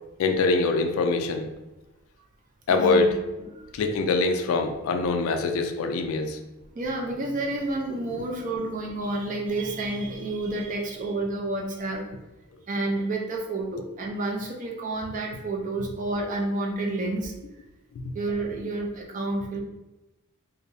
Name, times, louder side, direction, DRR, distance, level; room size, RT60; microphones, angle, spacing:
voice 1, 0.2-1.5 2.7-3.2 3.7-6.4 8.1-8.2 18.0-18.1, left 3 dB, 70° left, 5 dB, 0.3 m, -24 dB
voice 2, 2.7-3.1 3.5-3.6 6.8-12.1 12.7-17.3 18.1-19.6, right 2 dB, 35° right, 0 dB, 0.4 m, -30 dB
2.6 x 2.0 x 2.5 m, 1.0 s
head